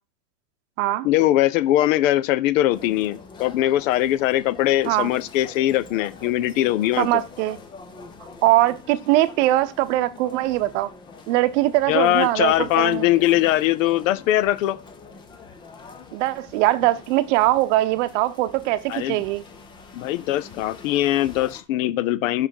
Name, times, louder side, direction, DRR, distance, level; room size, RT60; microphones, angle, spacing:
voice 1, 1.0-7.2 11.9-14.8 18.9-19.2 19.9-22.5, left 14 dB, 55° left, 0.8 m, -21 dB
sound 1, 2.7-21.6, left 4 dB, 10° left, 0.4 m, -44 dB
voice 2, 7.0-7.6 8.4-10.9 11.3-13.1 16.1-19.4, right 16 dB, 50° right, 0.8 m, -21 dB
5.8 x 5.7 x 6.4 m
supercardioid pair, 145°, 48 cm